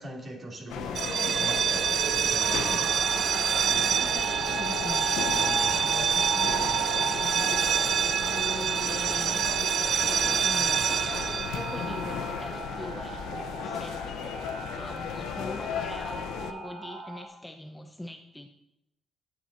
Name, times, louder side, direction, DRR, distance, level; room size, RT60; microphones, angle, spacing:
voice 1, 0.0-1.9 2.2-3.0 5.3-7.2, right 1 dB, 40° right, -2 dB, 3.4 m, -41 dB
sound 1, 0.7-16.5, left 9 dB, 90° left, 0.6 m, -36 dB
sound 2, 0.9-12.6, right 8 dB, 60° right, 0.3 m, -27 dB
sound 3, 2.8-17.2, right 2 dB, 85° right, 1.9 m, -37 dB
voice 2, 3.9-5.3 8.2-9.5 10.0-10.9 11.3-18.5, left 1 dB, 10° left, 4 dB, 0.8 m, -42 dB
10.0 x 8.9 x 4.3 m, 0.88 s
cardioid pair, 90°, 0 cm